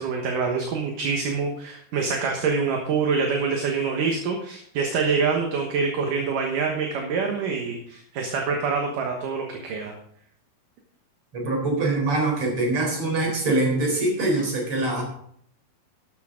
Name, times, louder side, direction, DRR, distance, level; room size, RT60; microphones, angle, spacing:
voice 1, 0.0-9.9, right 5 dB, 65° right, 2 dB, 2.6 m, -26 dB
voice 2, 11.3-15.0, right 2 dB, 35° right, 0 dB, 4.5 m, -24 dB
12.5 x 10.5 x 3.8 m, 0.65 s
omnidirectional pair, 4.6 m